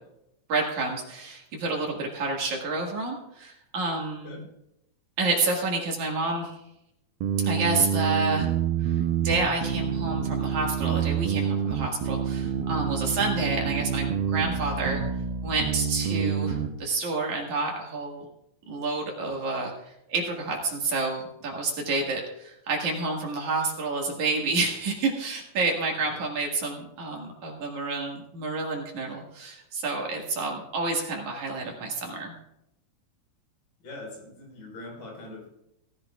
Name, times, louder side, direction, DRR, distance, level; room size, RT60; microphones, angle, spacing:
voice 1, 0.5-4.4 5.2-6.6 7.4-8.5 8.8-15.0 15.4-18.2 18.7-19.7 20.1-32.3, right 3 dB, 60° right, 0 dB, 3.1 m, -29 dB
sound 1, 7.2-16.7, right 8 dB, 90° right, 2.7 m, -27 dB
voice 2, 33.8-35.5, left 2 dB, 75° left, -2 dB, 6.4 m, -42 dB
18.0 x 14.5 x 2.4 m, 0.82 s
omnidirectional pair, 4.0 m